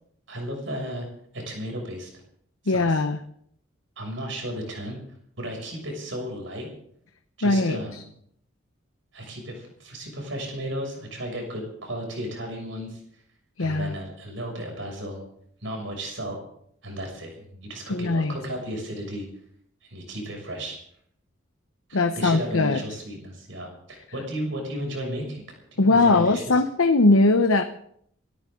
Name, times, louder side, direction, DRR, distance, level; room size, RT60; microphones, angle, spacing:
voice 1, 0.3-1.1 1.3-2.1 2.6-3.0 4.0-5.0 5.4-6.7 7.4-8.0 9.1-13.0 13.6-15.2 15.6-16.4 16.8-19.3 19.9-20.8 21.9-25.4 25.7-26.6, equal, 70° right, 2 dB, 6.6 m, -34 dB
voice 2, 2.7-3.2 7.4-8.0 13.6-13.9 17.9-18.4 21.9-22.8 25.8-27.6, left 3 dB, 90° left, 7 dB, 0.9 m, -20 dB
28.0 x 13.5 x 3.8 m, 0.68 s
head